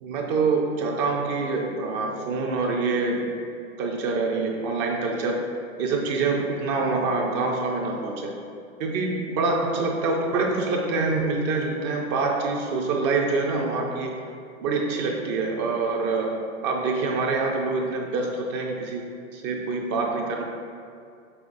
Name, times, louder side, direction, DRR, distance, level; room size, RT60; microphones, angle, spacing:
voice 1, 0.0-3.4 3.8-5.4 5.8-8.3 8.8-14.2 14.6-16.3 16.6-19.1 19.3-20.4, right 3 dB, 25° right, 0 dB, 0.4 m, -25 dB
6.8 x 5.5 x 2.5 m, 2.5 s
hypercardioid pair, 120°, 41 cm